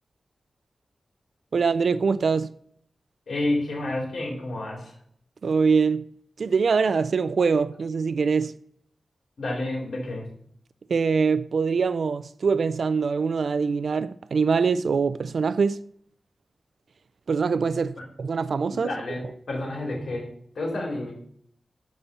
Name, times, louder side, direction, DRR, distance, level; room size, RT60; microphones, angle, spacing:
voice 1, 1.5-2.5 5.4-6.0 6.4-8.5 10.9-15.8 17.3-18.9, right 5 dB, 60° right, 0.3 m, -23 dB
voice 2, 3.3-4.9 9.4-10.3 18.7-20.3 20.5-21.2, left 2 dB, 75° left, 4.0 m, -30 dB
10.5 x 4.3 x 7.0 m
wide cardioid pair, 180°, 0 cm